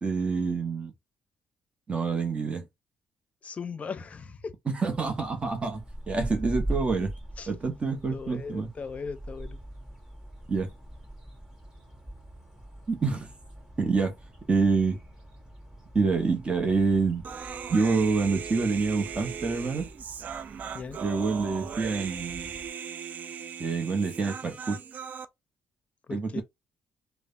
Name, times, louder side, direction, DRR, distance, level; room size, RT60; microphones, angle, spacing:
voice 1, 0.0-0.9 1.9-2.6 4.7-7.1 7.5-8.7 10.5-10.7 12.9-13.3 13.8-14.1 14.5-15.0 15.9-17.2 17.7-19.9 21.0-22.5 23.6-24.8 26.1-26.4, right 4 dB, 35° right, 0.8 m, -27 dB
voice 2, 3.4-4.5 7.4-7.5 8.1-9.6 20.7-21.0 26.1-26.4, left 5 dB, 40° left, 0.5 m, -38 dB
sound 1, 4.9-22.7, right 1 dB, 20° right, 1.7 m, -42 dB
Human voice, 17.2-25.3, right 7 dB, 55° right, 0.3 m, -38 dB
3.2 x 2.1 x 2.5 m
hypercardioid pair, 55°, 3 cm